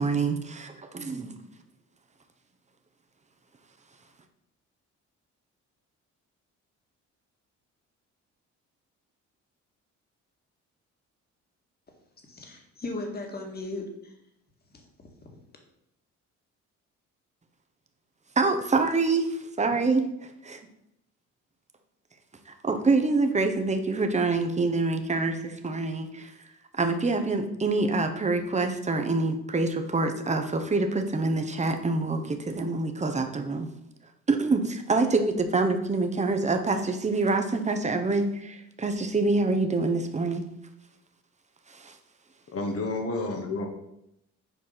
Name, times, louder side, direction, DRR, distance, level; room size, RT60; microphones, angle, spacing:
voice 1, 0.0-1.3 18.4-20.6 22.5-26.3 26.8-33.7 34.3-40.4 41.7-42.0, right 3 dB, 25° right, 6 dB, 1.1 m, -26 dB
voice 2, 12.3-14.1 14.7-15.1, left 2 dB, 30° left, 2 dB, 2.0 m, -37 dB
voice 3, 42.5-43.7, left 2 dB, 50° left, 2 dB, 1.4 m, -30 dB
7.1 x 4.7 x 5.8 m, 0.83 s
cardioid pair, 90°, 30 cm